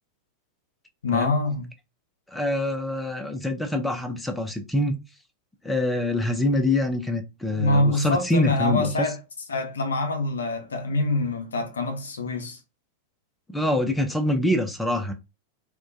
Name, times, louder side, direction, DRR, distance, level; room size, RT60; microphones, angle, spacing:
voice 1, 1.0-1.7 7.6-9.2 9.5-12.6, left 2 dB, 70° left, 0.5 m, -25 dB
voice 2, 2.3-5.0 5.6-9.1 13.5-15.1, left 1 dB, 5° left, 0.4 m, -25 dB
2.2 x 2.1 x 2.5 m
figure-of-eight pair, 90°, 0 cm